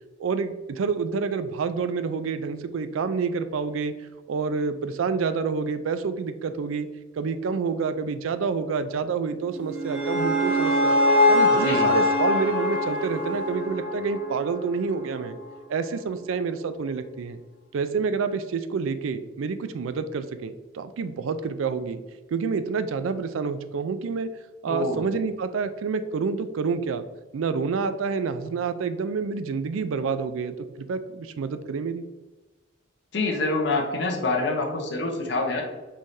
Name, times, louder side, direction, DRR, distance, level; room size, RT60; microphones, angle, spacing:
voice 1, 0.2-3.9 4.3-6.9 7.1-10.9 11.3-15.4 15.7-17.4 17.7-22.0 22.3-24.3 24.6-27.1 27.3-32.0, right 5 dB, 85° right, 11 dB, 0.4 m, -28 dB
sound 1, 9.5-14.7, left 1 dB, 5° right, 0.9 m, -23 dB
voice 2, 11.5-11.9 24.7-25.1 33.1-35.6, left 2 dB, 60° left, 1 dB, 0.8 m, -26 dB
5.5 x 3.2 x 2.6 m, 1.2 s
head